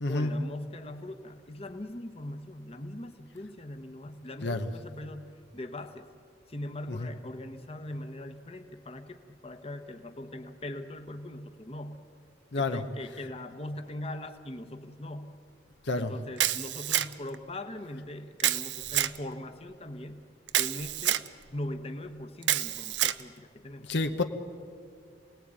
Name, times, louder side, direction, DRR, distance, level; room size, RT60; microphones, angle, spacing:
voice 1, 0.1-6.1 6.5-12.0 12.6-15.4 15.9-20.3 20.6-21.2 21.5-23.9, left 1 dB, 35° left, 7 dB, 1.2 m, -41 dB
voice 2, 12.5-12.8 15.9-16.1 23.9-24.2, left 2 dB, 80° left, 7 dB, 1.2 m, -29 dB
Camera, 16.4-17.3 18.4-19.2 20.5-21.3 22.4-23.2, right 12 dB, 85° right, 0.7 m, -28 dB
27.5 x 19.0 x 9.0 m, 2.4 s
head